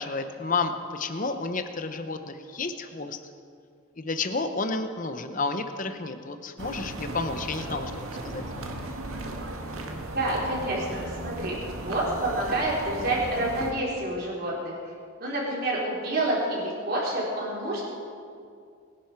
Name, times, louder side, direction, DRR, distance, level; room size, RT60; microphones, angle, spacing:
voice 1, 0.0-3.2 4.0-8.4, left 3 dB, 35° left, 8 dB, 0.8 m, -31 dB
sound 1, 6.6-13.7, right 1 dB, 75° right, 1.6 m, -36 dB
voice 2, 10.1-14.7 15.2-17.8, right 1 dB, 45° right, -4 dB, 4.2 m, -28 dB
22.5 x 11.0 x 4.7 m, 2.3 s
head